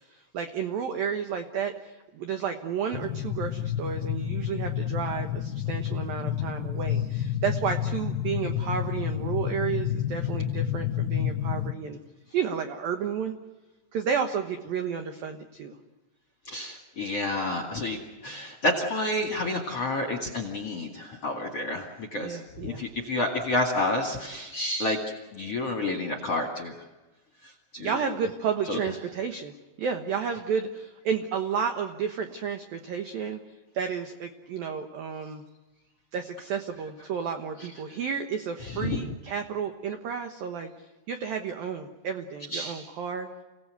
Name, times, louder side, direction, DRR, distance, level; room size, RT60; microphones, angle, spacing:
voice 1, 0.1-12.0 12.3-13.3 13.9-15.8 22.1-22.9 27.8-33.4 33.7-35.4 36.1-40.7 41.1-43.3, right 7 dB, 75° right, 5 dB, 2.1 m, -32 dB
sound 1, 2.9-11.7, left 10 dB, 85° left, 2.3 m, -30 dB
voice 2, 16.5-25.0 25.3-26.8 27.7-27.9 28.7-28.8 38.7-39.0 42.5-42.8, left 1 dB, 50° left, 6 dB, 2.0 m, -29 dB
30.0 x 18.0 x 8.1 m, 1.2 s
omnidirectional pair, 6.0 m